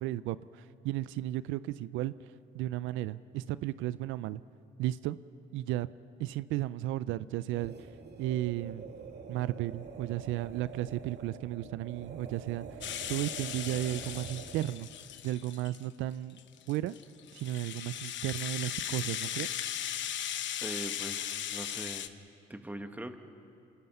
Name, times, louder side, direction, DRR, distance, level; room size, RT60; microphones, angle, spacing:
voice 1, 0.0-4.4 4.8-5.2 5.5-5.9 6.2-7.9 8.2-8.8 9.3-12.7 13.1-14.9 15.2-16.4 16.7-17.0 17.3-19.5, right 15 dB, 90° right, 17 dB, 0.4 m, -34 dB
sound 1, 7.5-14.8, right 5 dB, 60° right, 2.3 m, -46 dB
Rattle (instrument), 12.8-15.8 16.4-22.1, left 10 dB, 70° left, 0.9 m, -37 dB
voice 2, 20.6-22.1 22.5-23.2, right 1 dB, 10° right, 7 dB, 1.6 m, -41 dB
26.5 x 19.5 x 5.5 m, 2.7 s
supercardioid pair, 70°, 20 cm